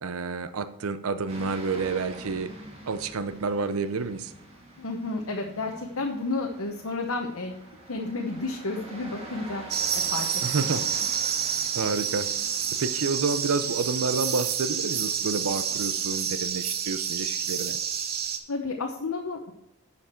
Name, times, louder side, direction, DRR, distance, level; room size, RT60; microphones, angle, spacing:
voice 1, 0.0-2.5 2.9-4.3 10.4-10.8 11.7-12.3 12.8-17.8, right 4 dB, 70° right, 11 dB, 0.6 m, -29 dB
sound 1, 1.3-16.1, right 1 dB, 30° right, 1.9 m, -46 dB
voice 2, 4.8-7.5 7.9-9.6 10.1-10.3 10.6-11.1 18.5-19.5, left 3 dB, 70° left, 1 dB, 0.9 m, -31 dB
sound 2, 9.7-18.4, right 8 dB, 45° right, 1.0 m, -29 dB
11.0 x 5.8 x 4.4 m, 0.87 s
head